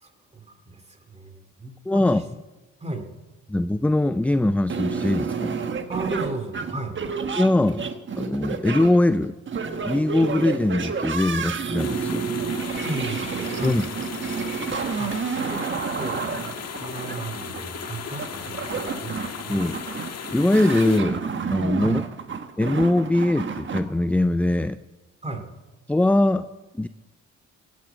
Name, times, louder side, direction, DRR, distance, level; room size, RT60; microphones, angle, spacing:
voice 1, 0.0-2.2 2.8-3.1 5.9-7.0 12.8-13.8 15.0-15.6 15.9-19.6 21.8-22.0 25.2-25.4, right 2 dB, 20° right, 6 dB, 2.5 m, -35 dB
voice 2, 1.9-2.2 3.5-5.6 7.4-7.9 8.2-9.3 9.8-12.3 13.6-13.8 19.5-19.8 20.3-21.2 21.5-22.0 22.6-24.8 25.9-26.5 26.8-26.9, left 2 dB, 5° left, 13 dB, 0.4 m, -21 dB
sound 1, 4.7-23.8, right 5 dB, 40° right, 1.3 m, -30 dB
sound 2, 11.8-21.0, left 7 dB, 55° left, 1.6 m, -36 dB
16.0 x 9.4 x 7.9 m, 1.1 s
cardioid pair, 90°, 30 cm